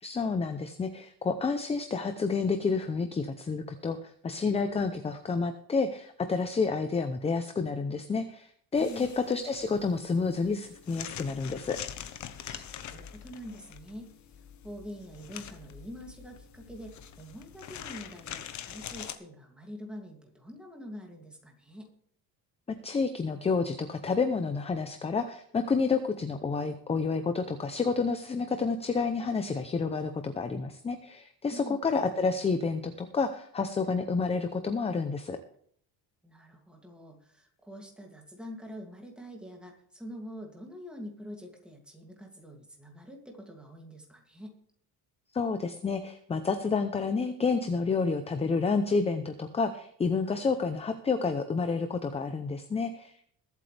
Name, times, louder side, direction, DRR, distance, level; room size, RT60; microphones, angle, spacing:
voice 1, 0.0-11.8 22.7-35.4 45.3-53.3, left 4 dB, 15° left, 8 dB, 0.7 m, -29 dB
sound 1, 8.7-19.1, left 9 dB, 45° left, 1.1 m, -44 dB
voice 2, 8.8-9.1 12.5-14.1 14.6-21.9 31.5-31.8 36.2-44.6, equal, ahead, 1 dB, 2.6 m, -45 dB
22.0 x 8.2 x 3.4 m, 0.64 s
cardioid pair, 165°, 39 cm